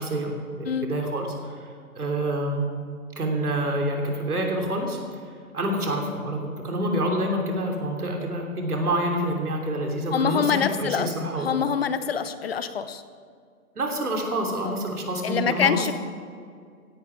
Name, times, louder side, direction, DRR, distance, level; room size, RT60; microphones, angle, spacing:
voice 1, 0.0-2.7 3.2-5.2 5.5-11.5 13.7-15.8, right 1 dB, 75° right, 2 dB, 3.2 m, -27 dB
voice 2, 10.1-13.0 14.6-14.7 15.2-15.9, left 7 dB, 40° left, 12 dB, 0.7 m, -25 dB
16.0 x 11.0 x 4.8 m, 2.1 s
hypercardioid pair, 145°, 45 cm